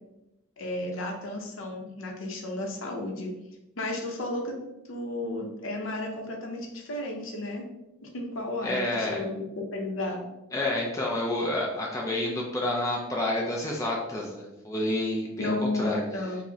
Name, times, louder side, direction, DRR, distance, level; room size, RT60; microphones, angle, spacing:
voice 1, 0.6-3.3 3.8-4.5 4.9-7.6 8.0-9.4 9.7-10.2 15.4-16.4, left 2 dB, 60° left, 1 dB, 0.6 m, -33 dB
voice 2, 8.6-9.2 10.5-16.4, left 1 dB, 15° left, -2 dB, 0.4 m, -29 dB
4.6 x 2.0 x 2.7 m, 0.97 s
head